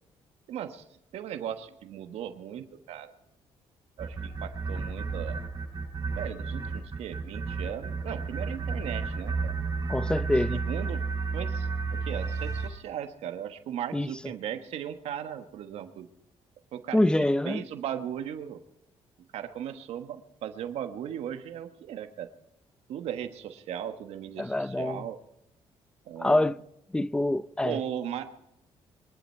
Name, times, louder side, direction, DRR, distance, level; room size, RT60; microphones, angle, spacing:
voice 1, 0.5-0.8 1.1-3.1 4.0-5.4 6.2-9.5 10.5-11.0 11.3-16.1 16.7-18.6 19.3-22.3 22.9-25.2 26.1-26.5 27.6-28.3, right 9 dB, 80° right, 1.3 m, -37 dB
sound 1, 4.0-12.7, right 4 dB, 40° right, 7.0 m, -32 dB
voice 2, 9.9-10.6 13.9-14.1 16.9-17.6 24.4-25.1 26.2-26.6 26.9-27.8, left 1 dB, 10° left, 0.6 m, -25 dB
23.0 x 11.5 x 4.5 m
cardioid pair, 115°, 10 cm